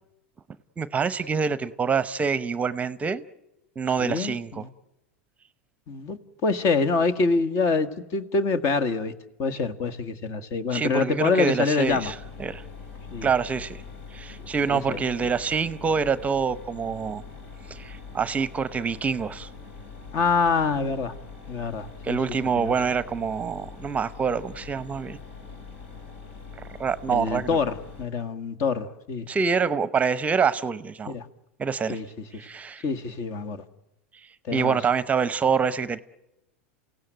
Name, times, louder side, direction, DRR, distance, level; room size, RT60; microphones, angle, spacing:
voice 1, 0.8-3.2 3.8-4.6 10.7-12.6 13.2-13.8 14.1-17.2 17.7-19.5 22.0-25.2 26.8-27.5 29.3-31.1 31.6-32.0 32.3-32.8 34.5-36.0, right 5 dB, 20° right, 16 dB, 0.8 m, -26 dB
voice 2, 4.0-4.7 5.9-9.1 9.4-12.1 13.1-13.3 14.7-15.0 20.1-21.1 21.5-22.2 22.6-22.8 27.1-29.3 31.1-31.3 31.9-32.1 32.8-33.6 34.5-34.8, left 4 dB, 45° left, 10 dB, 1.8 m, -26 dB
Mechanisms, 11.8-28.0, left 5 dB, 70° left, 5.4 m, -43 dB
29.5 x 16.5 x 9.2 m, 0.95 s
hypercardioid pair, 95°, 7 cm